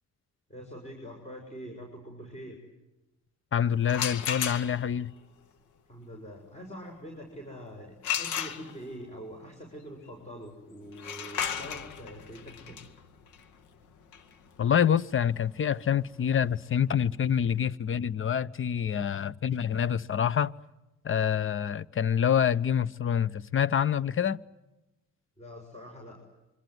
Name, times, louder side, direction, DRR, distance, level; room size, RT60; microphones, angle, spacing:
voice 1, 0.5-2.6 5.9-12.8 25.4-26.2, equal, 20° left, 7.1 m, -44 dB
voice 2, 3.5-5.1 14.6-20.5 21.0-24.4, left 8 dB, 40° left, 1.0 m, -26 dB
sound 1, 3.8-5.0 8.0-9.1 10.9-16.6, left 8 dB, 80° left, 2.2 m, -35 dB
25.5 x 25.5 x 8.1 m
cardioid pair, 90°, 30 cm